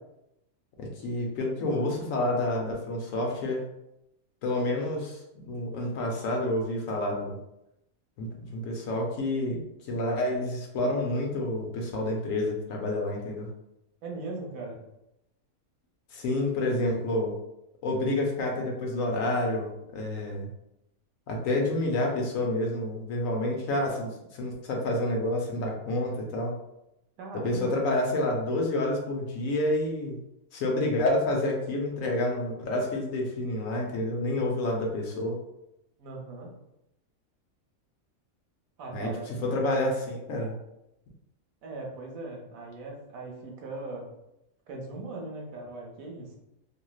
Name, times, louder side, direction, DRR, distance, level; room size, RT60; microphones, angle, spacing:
voice 1, 0.8-3.6 4.4-7.4 8.2-13.5 16.1-17.4 17.8-20.5 21.3-26.6 27.3-30.2 30.5-35.4 38.9-40.6, left 1 dB, 75° left, 0 dB, 1.0 m, -29 dB
voice 2, 14.0-14.8 27.2-28.0 36.0-36.5 38.8-39.9 41.6-44.1 44.7-46.3, right 3 dB, 75° right, 0 dB, 1.1 m, -39 dB
3.0 x 2.7 x 2.3 m, 0.87 s
omnidirectional pair, 1.5 m